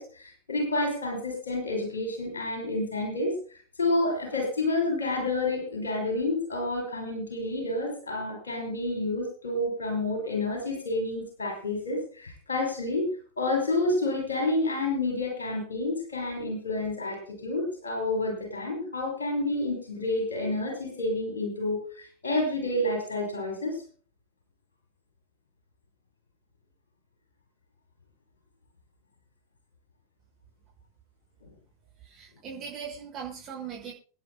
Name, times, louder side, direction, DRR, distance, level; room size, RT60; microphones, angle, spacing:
voice 1, 0.0-3.4 3.8-13.1 13.4-23.8, left 2 dB, 70° left, 3 dB, 5.7 m, -29 dB
voice 2, 32.0-33.9, right 7 dB, 35° right, -2 dB, 5.5 m, -39 dB
27.5 x 10.0 x 2.2 m, 0.41 s
figure-of-eight pair, 90°, 0 cm